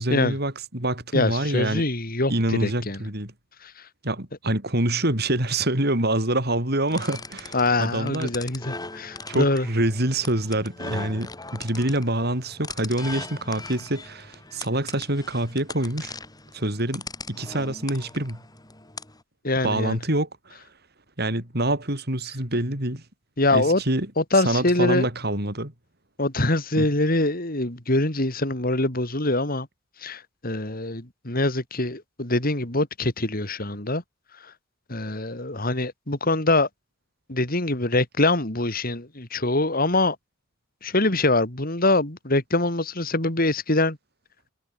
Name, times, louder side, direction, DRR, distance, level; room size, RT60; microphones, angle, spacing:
voice 1, 0.0-1.8 2.3-3.3 4.0-8.3 9.3-16.1 16.5-17.0 17.3-18.4 19.6-20.6 21.2-23.0 23.5-24.1 24.4-25.7 26.8-26.9, right 1 dB, 55° right, 6.7 m, -26 dB
voice 2, 1.1-3.0 3.6-3.7 7.5-9.7 19.4-20.0 23.4-23.8 24.2-25.1 26.2-29.7 30.0-34.0 34.9-36.7 37.3-40.2 40.8-44.0, left 2 dB, 50° left, 3.9 m, -24 dB
sound 1, 6.9-19.2, left 3 dB, 20° left, 7.7 m, -39 dB
head